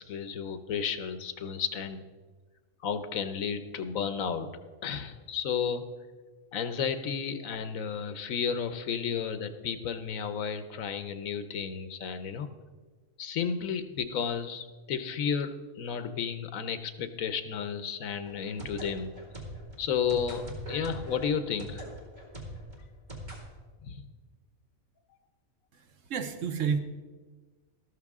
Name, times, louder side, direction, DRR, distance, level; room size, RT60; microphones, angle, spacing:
voice 1, 0.0-2.1 2.8-4.5 4.8-5.9 6.5-12.5 13.2-19.1 19.8-21.8 23.8-24.0, left 7 dB, 75° left, 10 dB, 1.2 m, -32 dB
sound 1, 18.2-23.4, right 1 dB, 30° right, 2.1 m, -42 dB
voice 2, 25.7-26.8, right 6 dB, 65° right, 8 dB, 1.2 m, -31 dB
13.5 x 13.0 x 3.6 m, 1.3 s
omnidirectional pair, 1.5 m